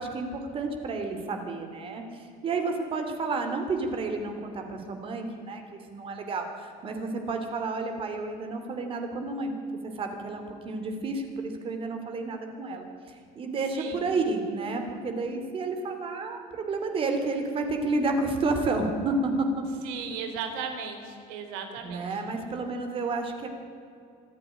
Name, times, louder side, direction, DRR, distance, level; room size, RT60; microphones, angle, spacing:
voice 1, 0.0-9.5 9.8-19.6 21.8-23.5, right 3 dB, 35° right, 5 dB, 2.9 m, -31 dB
voice 2, 19.8-22.2, right 6 dB, 90° right, 6 dB, 3.8 m, -36 dB
25.5 x 10.5 x 10.0 m, 2.4 s
cardioid pair, 145°, 17 cm